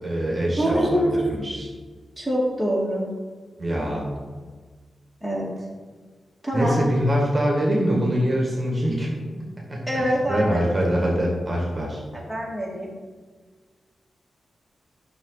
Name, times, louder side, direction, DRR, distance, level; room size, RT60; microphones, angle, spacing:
voice 1, 0.0-1.7 3.6-4.1 6.5-12.0, equal, 20° right, -3 dB, 2.0 m, -24 dB
voice 2, 0.6-1.3 2.2-3.0 5.2-5.5 6.4-6.8 9.9-10.8 12.3-12.9, equal, 5° left, -4 dB, 2.1 m, -24 dB
11.0 x 6.2 x 4.1 m, 1.5 s
wide cardioid pair, 120°, 0 cm